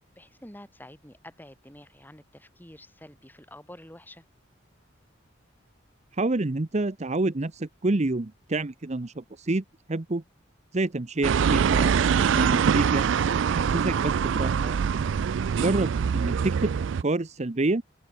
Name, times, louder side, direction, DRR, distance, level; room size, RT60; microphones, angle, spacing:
voice 1, 0.1-4.2, left 1 dB, 10° left, 6.7 m, -48 dB
voice 2, 6.2-10.2 10.7-13.0 13.5-14.8 15.6-16.7 17.0-17.8, right 2 dB, 35° right, 0.8 m, -28 dB
sound 1, 11.2-17.0, right 7 dB, 70° right, 0.4 m, -24 dB
head